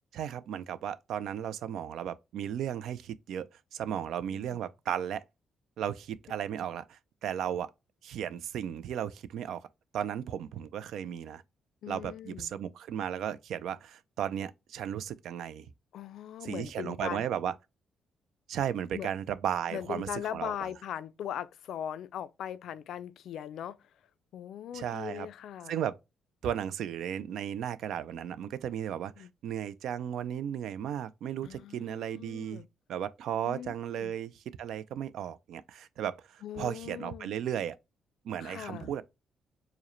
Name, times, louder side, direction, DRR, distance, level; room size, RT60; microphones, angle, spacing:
voice 1, 0.1-5.2 5.8-7.7 8.0-9.7 9.9-11.4 11.9-15.7 16.4-17.5 18.5-20.7 24.7-25.3 25.7-25.9 26.4-32.6 32.9-37.8 38.2-39.0, right 9 dB, 75° right, 0.3 m, -35 dB
voice 2, 11.8-12.5 15.9-17.3 18.9-19.1 19.7-23.8 24.3-25.7 29.2-29.3 31.4-32.7 33.5-34.1 36.4-37.3 38.4-38.9, left 10 dB, 75° left, 0.3 m, -40 dB
4.7 x 2.1 x 3.0 m
cardioid pair, 90°, 0 cm